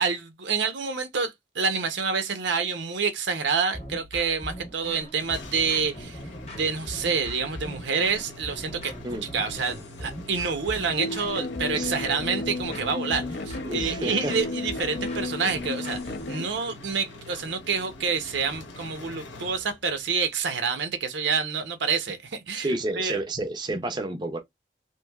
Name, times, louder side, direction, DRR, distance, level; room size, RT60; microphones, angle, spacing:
voice 1, 0.0-6.2 6.5-16.0 16.3-23.2, right 5 dB, 80° right, 0.6 m, -28 dB
sound 1, 3.7-16.4, equal, 35° left, 0.8 m, -40 dB
sound 2, 5.2-20.1, left 2 dB, 90° left, 0.8 m, -44 dB
sound 3, 11.0-16.4, left 2 dB, 65° left, 0.4 m, -33 dB
voice 2, 13.6-14.3 22.5-24.4, right 2 dB, 25° right, 0.4 m, -30 dB
3.0 x 2.6 x 2.3 m
head